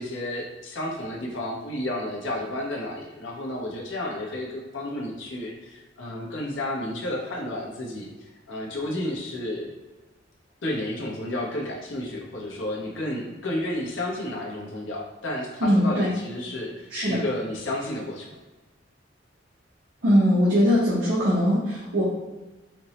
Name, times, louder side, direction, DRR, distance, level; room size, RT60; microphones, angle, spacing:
voice 1, 0.0-9.7 10.6-18.3, left 1 dB, 85° left, -2 dB, 0.8 m, -32 dB
voice 2, 15.6-16.1 16.9-17.2 20.0-22.0, equal, 80° right, -8 dB, 0.8 m, -21 dB
4.3 x 2.0 x 2.9 m, 1.1 s
head